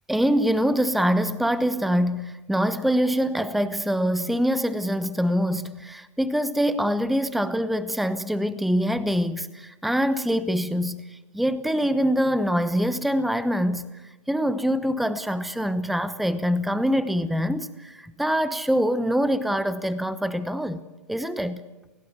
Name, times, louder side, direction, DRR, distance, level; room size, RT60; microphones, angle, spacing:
voice 1, 0.1-13.9 14.3-21.6, equal, ahead, 1.0 m, -24 dB
28.5 x 18.0 x 8.3 m
hypercardioid pair, 115°, 17 cm